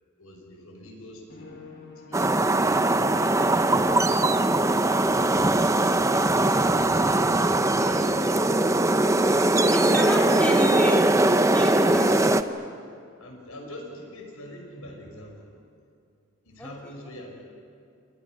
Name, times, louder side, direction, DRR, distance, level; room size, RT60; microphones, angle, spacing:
voice 1, 0.2-1.6 2.1-2.3 2.7-3.5 7.8-8.3 11.9-12.2 13.2-15.6 16.4-17.4, left 1 dB, 90° left, 2 dB, 6.2 m, -43 dB
Musical instrument, 1.3-9.8, left 4 dB, 45° left, 4.5 m, -46 dB
sound 1, 2.1-12.4, right 2 dB, 15° right, 0.7 m, -21 dB
voice 2, 9.7-11.1 11.5-12.1 16.6-16.7, equal, 10° left, -2 dB, 3.2 m, -28 dB
29.5 x 27.5 x 6.4 m, 2.4 s
head